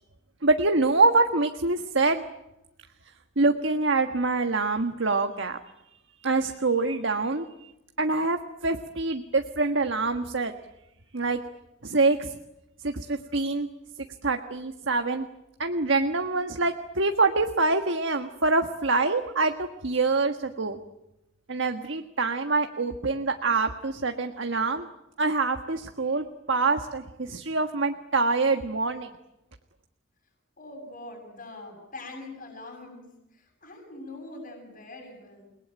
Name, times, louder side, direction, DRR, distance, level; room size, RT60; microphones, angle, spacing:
voice 1, 0.4-2.2 3.4-5.6 6.2-7.7 8.0-10.5 11.1-11.4 11.8-12.4 12.8-13.7 14.2-15.3 15.6-20.8 21.5-24.9 25.2-29.1, right 3 dB, 70° right, 6 dB, 1.4 m, -25 dB
voice 2, 30.6-33.1 33.3-35.6, left 2 dB, 45° left, 0 dB, 7.1 m, -43 dB
29.5 x 20.5 x 9.1 m, 0.93 s
head